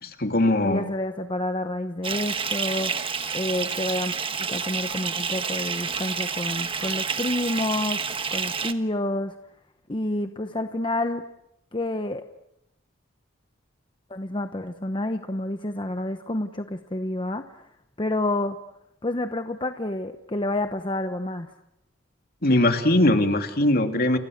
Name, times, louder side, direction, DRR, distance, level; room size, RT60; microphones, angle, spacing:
voice 1, 0.0-0.9 22.4-24.2, left 1 dB, 50° left, 6 dB, 3.0 m, -21 dB
voice 2, 0.6-8.0 8.3-9.4 9.9-11.2 11.7-12.3 14.1-17.7 18.0-18.6 19.0-21.5, left 1 dB, 25° left, 8 dB, 1.0 m, -29 dB
Bathtub (filling or washing) / Fill (with liquid), 2.0-8.7, right 6 dB, 25° right, 1.4 m, -29 dB
30.0 x 29.0 x 6.6 m, 0.82 s
head